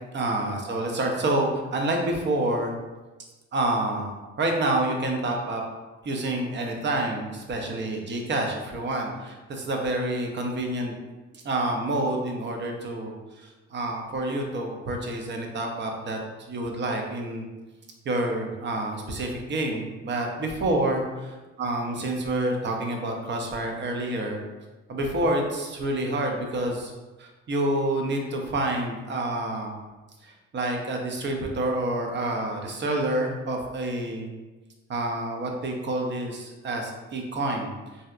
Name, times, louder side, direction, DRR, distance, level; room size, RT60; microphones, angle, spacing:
voice 1, 0.1-2.7 3.5-5.6 6.0-10.9 11.3-13.1 13.4-17.4 18.1-21.0 21.6-24.4 24.9-26.9 27.2-29.7 30.2-34.3 34.9-37.7, right 1 dB, 40° right, 2 dB, 0.5 m, -28 dB
2.7 x 2.1 x 2.3 m, 1.2 s
cardioid pair, 90°, 30 cm